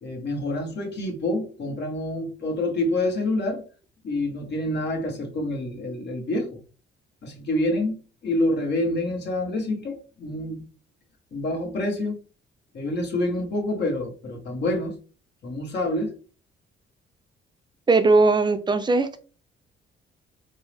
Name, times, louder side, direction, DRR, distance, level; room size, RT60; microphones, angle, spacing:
voice 1, 0.0-3.6 4.0-6.6 7.2-10.6 11.3-12.2 12.7-14.9 15.4-16.1, left 1 dB, 60° left, 1 dB, 1.4 m, -27 dB
voice 2, 17.9-19.2, right 3 dB, 20° right, 9 dB, 0.5 m, -19 dB
4.4 x 2.1 x 3.4 m, 0.37 s
cardioid pair, 90°, 20 cm